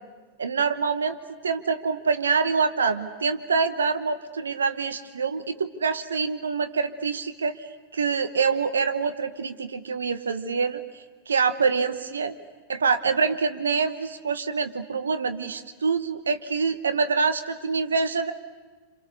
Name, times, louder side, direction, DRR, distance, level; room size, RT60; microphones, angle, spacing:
voice 1, 0.4-1.2 1.4-7.7 7.9-10.8 11.3-12.3 12.7-18.3, right 5 dB, 70° right, 10 dB, 1.2 m, -25 dB
28.0 x 27.5 x 6.7 m, 1.3 s
figure-of-eight pair, 90°, 0 cm